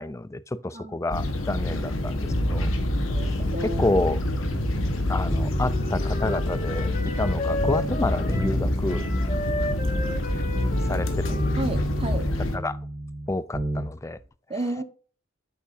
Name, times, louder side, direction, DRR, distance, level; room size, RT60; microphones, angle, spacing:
voice 1, 0.0-2.7 3.6-4.2 5.1-9.0 10.9-11.3 12.5-12.8 13.3-14.2, left 2 dB, 15° left, 0.4 m, -29 dB
sound 1, 1.1-12.6, left 1 dB, 80° left, 1.4 m, -27 dB
sound 2, 2.3-5.0 5.3-7.3 7.6-11.0 11.3-13.9 14.2-14.3, right 1 dB, ahead, 2.1 m, -31 dB
voice 2, 3.1-3.9 11.6-12.3 14.5-14.8, right 1 dB, 30° right, 1.4 m, -32 dB
Wind instrument woodwind instrument, 5.0-8.6 8.8-12.7, left 2 dB, 40° left, 1.2 m, -34 dB
8.8 x 7.2 x 2.7 m
head